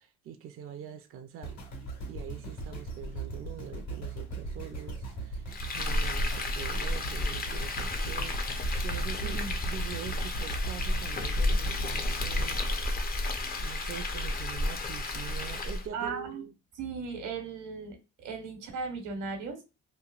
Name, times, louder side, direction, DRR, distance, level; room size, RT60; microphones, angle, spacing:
voice 1, 0.0-1.6 2.1-12.9 13.6-16.5, right 8 dB, 45° right, 0.4 m, -44 dB
sound 1, 1.4-13.6 14.2-14.3, right 2 dB, 60° left, 1.5 m, -39 dB
Frying (food), 5.5-15.9, left 2 dB, 30° left, 0.5 m, -31 dB
voice 2, 9.2-9.6 15.9-16.4 16.8-19.6, right 4 dB, 85° right, 1.0 m, -37 dB
3.0 x 2.1 x 2.3 m
cardioid pair, 90°, 30 cm